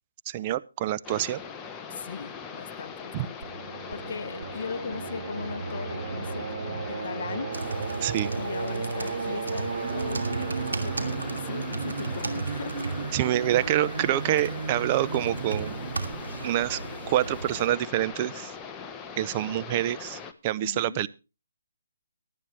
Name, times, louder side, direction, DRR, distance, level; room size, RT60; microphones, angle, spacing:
voice 1, 0.3-1.4 3.1-3.3 8.0-8.3 13.1-15.8 16.4-16.8 17.1-18.5 19.2-21.1, right 13 dB, 30° right, 0.6 m, -26 dB
sound 1, 1.0-20.3, left 6 dB, 15° left, 1.1 m, -41 dB
voice 2, 1.9-3.5 3.9-7.5 8.3-13.1 20.6-21.0, left 6 dB, 50° left, 0.9 m, -39 dB
Singing, 3.4-18.1, right 5 dB, 60° right, 1.7 m, -35 dB
sound 2, 7.5-17.7, right 3 dB, 80° right, 2.7 m, -36 dB
23.0 x 9.3 x 3.2 m
hypercardioid pair, 155°, 0 cm